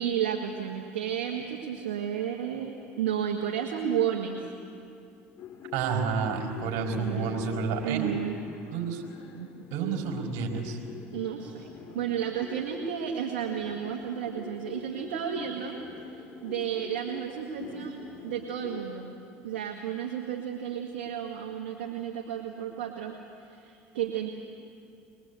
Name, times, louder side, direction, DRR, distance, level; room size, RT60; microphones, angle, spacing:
voice 1, 0.0-4.5 6.9-7.4 7.8-8.4 9.4-9.7 11.1-15.8 16.1-19.2 19.4-24.3, right 9 dB, 85° right, 1 dB, 1.7 m, -32 dB
sound 1, 5.4-18.8, left 6 dB, 45° left, 3.1 m, -44 dB
voice 2, 5.7-8.1 8.7-9.0 9.7-10.8, right 6 dB, 65° right, 2 dB, 4.6 m, -30 dB
22.0 x 22.0 x 8.2 m, 2.7 s
hypercardioid pair, 80°, 6 cm